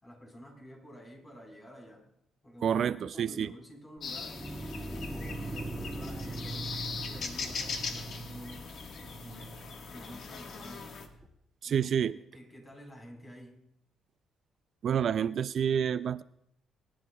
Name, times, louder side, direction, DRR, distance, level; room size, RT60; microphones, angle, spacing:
voice 1, 0.0-2.1 2.4-4.4 4.8-8.7 9.2-11.0 11.6-12.0 12.3-13.6, equal, 25° left, 2 dB, 4.3 m, -50 dB
voice 2, 2.6-3.5 11.6-12.2 14.8-16.2, right 8 dB, 60° right, 14 dB, 0.4 m, -28 dB
sound 1, 4.0-11.1, left 5 dB, 65° left, 1.5 m, -40 dB
sound 2, 4.0-11.3, right 2 dB, 15° right, 1.8 m, -42 dB
25.5 x 11.0 x 2.3 m, 0.74 s
cardioid pair, 90°, 0 cm